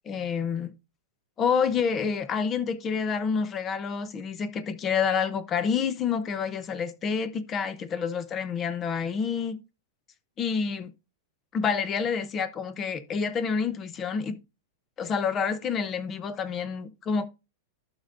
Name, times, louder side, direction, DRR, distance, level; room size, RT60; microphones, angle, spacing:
voice 1, 0.1-0.7 1.4-9.6 10.4-10.9 11.5-14.4 15.0-17.3, left 6 dB, 20° left, 0.6 m, -28 dB
11.5 x 6.6 x 2.5 m
supercardioid pair, 165°, 0 cm